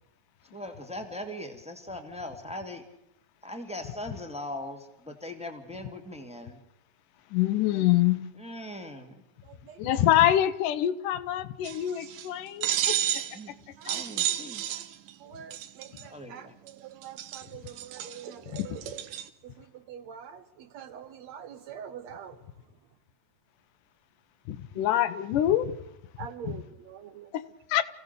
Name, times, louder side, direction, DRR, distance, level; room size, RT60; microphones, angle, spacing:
voice 1, 0.5-2.8 3.4-6.6 7.7-7.9 8.4-9.1 13.3-13.6 13.8-14.6 16.1-16.5, left 1 dB, 5° right, 4 dB, 1.3 m, -40 dB
voice 2, 7.3-8.3 9.8-13.1 18.5-18.7 24.5-25.8 26.5-26.6 27.3-27.8, left 12 dB, 80° left, 12 dB, 2.5 m, -25 dB
voice 3, 9.4-10.1 13.8-14.0 14.3-14.8 15.2-18.8 19.4-22.5 24.7-24.8 26.2-27.3, right 8 dB, 70° right, 10 dB, 1.9 m, -45 dB
sound 1, 11.6-12.3 12.6-13.4 13.9-15.1 15.5-16.0 16.7-16.8 17.0-19.3, right 11 dB, 85° right, 2.7 m, -31 dB
28.0 x 17.0 x 6.7 m, 0.86 s
omnidirectional pair, 3.7 m